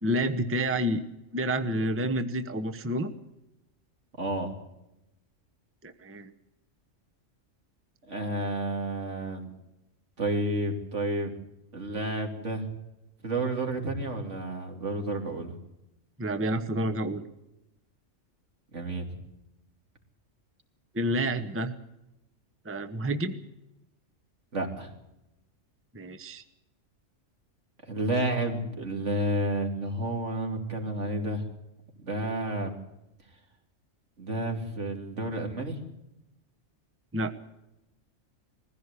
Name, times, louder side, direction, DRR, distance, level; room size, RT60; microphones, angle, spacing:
voice 1, 0.0-1.0 1.3-3.1 5.8-6.3 16.2-17.2 20.9-21.7 22.6-23.3 25.9-26.4 37.1-37.3, right 1 dB, 10° right, 9 dB, 0.9 m, -29 dB
voice 2, 4.2-4.5 8.1-9.5 10.2-11.3 11.7-12.7 13.2-15.5 18.7-19.1 24.5-24.9 27.8-31.4 32.0-32.8 34.2-35.8, right 1 dB, 65° right, 2 dB, 3.3 m, -30 dB
21.0 x 15.5 x 8.3 m, 0.91 s
omnidirectional pair, 1.3 m